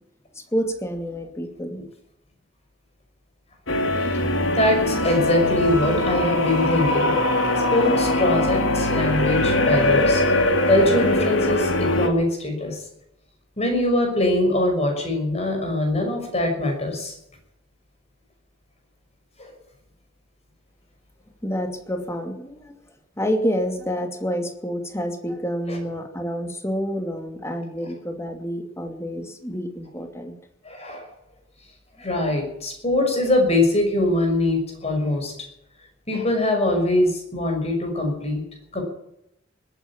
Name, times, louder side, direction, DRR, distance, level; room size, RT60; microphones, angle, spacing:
voice 1, 0.5-1.8 21.4-22.8 23.2-30.3, equal, 15° left, 4 dB, 2.5 m, -28 dB
sound 1, 3.7-12.1, left 1 dB, 85° left, 2.5 m, -21 dB
voice 2, 4.5-7.2 7.7-12.8 13.6-17.2 19.4-19.5 25.7-25.8 30.6-31.1 32.0-35.3 36.1-38.4 38.7-38.8, left 1 dB, 35° left, 3 dB, 5.9 m, -22 dB
20.5 x 9.5 x 7.3 m, 0.79 s
head